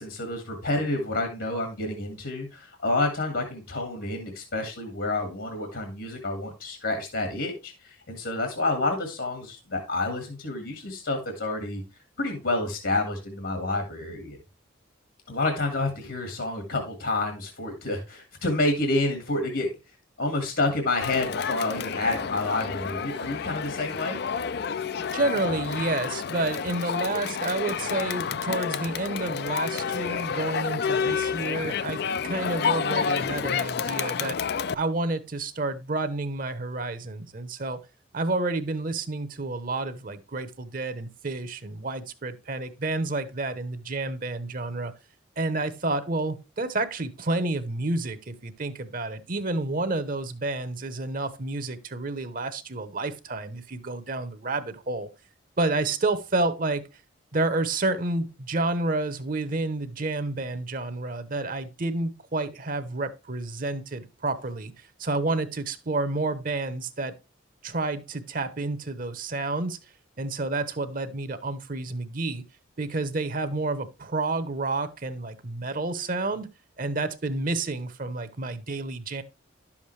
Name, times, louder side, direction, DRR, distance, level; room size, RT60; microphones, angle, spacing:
voice 1, 0.0-11.8 12.2-14.4 15.3-19.7 20.2-24.2, left 2 dB, 70° left, 1.9 m, -29 dB
Crowd, 21.0-34.7, left 6 dB, 50° left, 0.4 m, -29 dB
voice 2, 24.9-34.4 34.7-37.8 38.1-44.9 45.4-55.1 55.6-56.8 57.3-67.1 67.6-69.8 70.2-72.4 72.8-76.5 76.8-79.2, right 2 dB, 45° right, 0.8 m, -30 dB
11.0 x 7.2 x 3.2 m
head